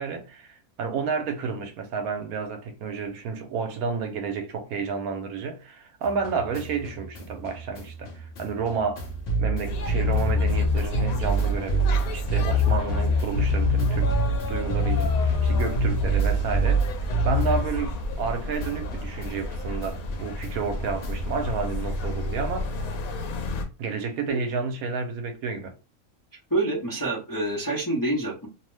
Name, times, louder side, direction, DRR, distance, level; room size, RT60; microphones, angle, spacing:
voice 1, 0.0-9.1 9.4-14.1 14.5-16.9 17.2-22.7 23.8-25.7, right 5 dB, 85° right, 1.1 m, -31 dB
sound 1, 6.0-18.3 18.6-21.4, equal, 55° left, 0.8 m, -26 dB
sound 2, 9.6-23.6, left 1 dB, 80° left, 1.1 m, -32 dB
voice 2, 26.5-28.5, right 2 dB, 25° left, 0.5 m, -27 dB
2.7 x 2.0 x 3.1 m
omnidirectional pair, 1.5 m